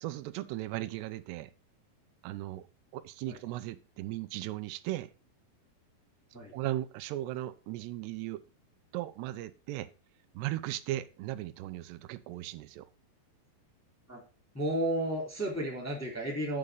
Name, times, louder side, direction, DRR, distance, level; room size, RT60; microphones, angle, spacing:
voice 1, 0.0-1.5 2.2-2.7 2.9-5.1 6.5-8.4 8.9-9.9 10.3-12.9, right 15 dB, 90° right, 2.8 m, -37 dB
voice 2, 14.5-16.6, right 1 dB, 5° left, 2.2 m, -32 dB
10.0 x 5.5 x 5.1 m
omnidirectional pair, 4.7 m